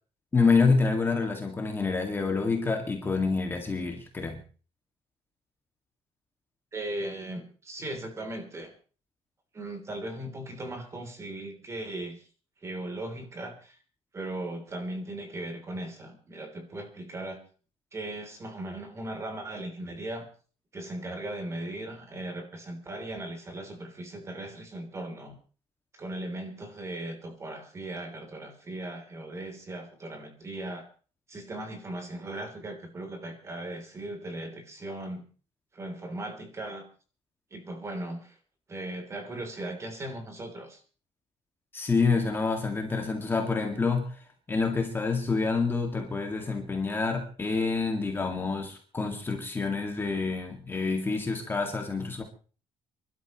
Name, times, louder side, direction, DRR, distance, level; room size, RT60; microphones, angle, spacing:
voice 1, 0.3-4.4 41.7-44.2 44.5-52.2, left 4 dB, 20° left, 3 dB, 2.0 m, -27 dB
voice 2, 6.7-8.7 9.5-12.3 12.6-13.8 14.1-17.4 17.9-20.3 20.7-25.3 25.9-30.8 31.3-35.2 35.7-36.9 37.5-38.4 38.7-40.8, right 1 dB, 25° right, 4 dB, 3.3 m, -38 dB
29.5 x 12.5 x 3.1 m, 0.38 s
cardioid pair, 165°, 12 cm